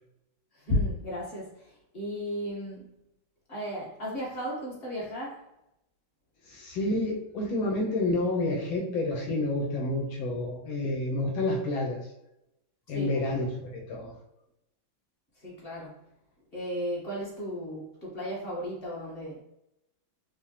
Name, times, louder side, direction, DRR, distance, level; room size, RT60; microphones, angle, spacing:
voice 1, 0.5-2.9 3.5-5.5 12.9-13.2 15.4-16.1 16.5-19.4, left 1 dB, 35° left, -6 dB, 1.3 m, -34 dB
voice 2, 6.5-12.0 12.9-13.5 13.7-14.1, left 2 dB, 80° left, -2 dB, 1.6 m, -29 dB
5.2 x 2.1 x 2.9 m, 0.85 s
omnidirectional pair, 2.1 m